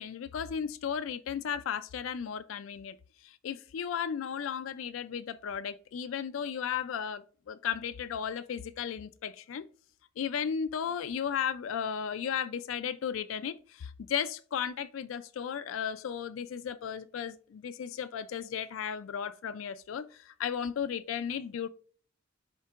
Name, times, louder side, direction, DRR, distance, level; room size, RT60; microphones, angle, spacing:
voice 1, 0.0-3.0 3.2-9.6 10.2-21.7, left 8 dB, 80° left, 0.4 m, -35 dB
11.0 x 3.7 x 2.4 m
head